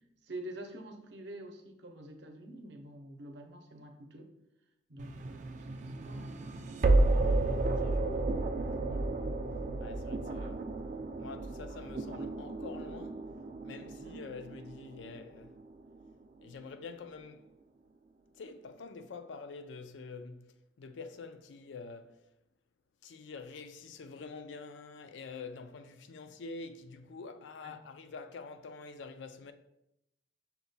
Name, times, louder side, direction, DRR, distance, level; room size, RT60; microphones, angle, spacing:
voice 1, 0.2-4.3 4.9-6.4 13.9-14.2 27.6-27.7, right 1 dB, 70° right, 0.6 m, -47 dB
sound 1, 5.0-16.0, right 2 dB, 40° right, 0.3 m, -32 dB
voice 2, 7.6-8.4 8.7-9.4 9.8-10.7 11.2-13.3 13.6-15.6 16.4-17.5 18.3-22.2 23.0-29.5, left 4 dB, 80° left, 0.4 m, -47 dB
5.7 x 2.2 x 4.0 m
head